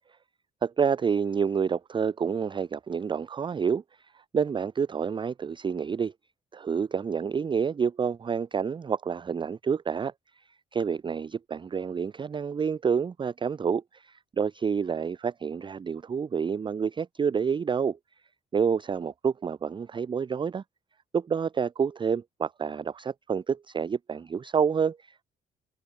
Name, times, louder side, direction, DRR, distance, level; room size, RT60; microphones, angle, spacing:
voice 1, 0.6-3.8 4.3-6.1 6.5-10.1 10.7-18.0 18.5-20.6 21.1-25.2, right 6 dB, 25° right, 0.4 m, -28 dB
hypercardioid pair, 50°, 21 cm